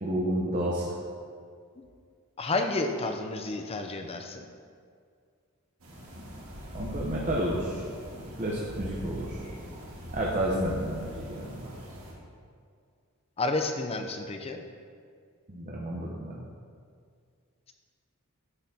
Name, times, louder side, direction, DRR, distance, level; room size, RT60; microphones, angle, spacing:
voice 1, 0.0-0.9 6.7-7.8 8.4-9.5 10.1-11.7 15.5-16.4, right 1 dB, 35° right, -4 dB, 0.8 m, -31 dB
voice 2, 2.4-4.5 13.4-14.6, left 2 dB, 30° left, 5 dB, 0.5 m, -30 dB
sound 1, 5.8-12.1, equal, 75° right, 1.9 m, -40 dB
9.8 x 6.4 x 2.8 m, 2.2 s
head